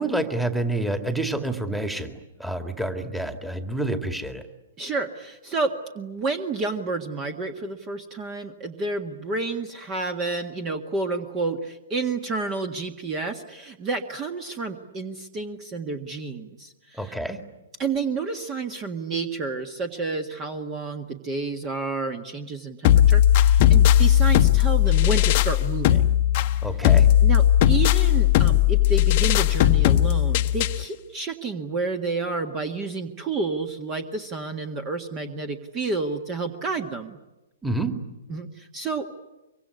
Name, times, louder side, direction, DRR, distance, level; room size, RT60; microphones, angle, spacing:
voice 1, 0.0-2.1 2.4-4.4 17.0-17.4 26.6-27.1 37.6-38.0, right 2 dB, 5° right, 6 dB, 2.3 m, -28 dB
voice 2, 4.8-17.2 17.8-26.2 27.2-37.2 38.3-39.2, right 3 dB, 25° right, 7 dB, 1.7 m, -30 dB
sound 1, 22.8-30.8, left 12 dB, 40° left, 1.0 m, -18 dB
24.5 x 24.5 x 9.8 m, 1.0 s
figure-of-eight pair, 115°, 0 cm